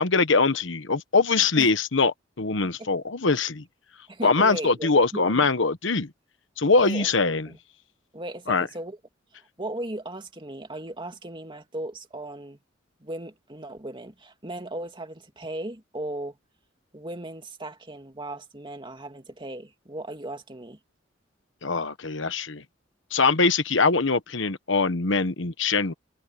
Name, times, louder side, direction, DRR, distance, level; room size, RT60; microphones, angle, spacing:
voice 1, 0.0-3.6 4.2-6.1 6.6-7.5 8.5-8.7 21.6-22.6 23.1-25.9, left 4 dB, 70° left, 1.2 m, -22 dB
voice 2, 4.1-5.5 6.8-7.1 7.5-7.6 8.1-9.0 9.6-12.6 13.0-16.4 16.9-20.8, right 1 dB, 25° right, 2.6 m, -37 dB
head